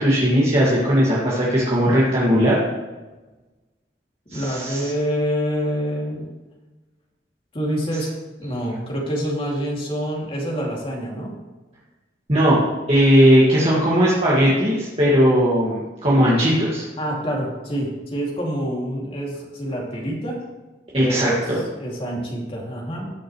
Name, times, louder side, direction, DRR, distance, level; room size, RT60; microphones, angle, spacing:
voice 1, 0.0-2.6 4.3-4.9 12.3-12.6 12.9-16.8 20.9-21.6, equal, 35° right, -7 dB, 2.0 m, -18 dB
voice 2, 4.3-6.3 7.5-11.3 17.0-20.5 21.0-21.5 21.8-23.1, equal, 30° left, -2 dB, 2.7 m, -26 dB
19.0 x 6.4 x 3.2 m, 1.2 s
head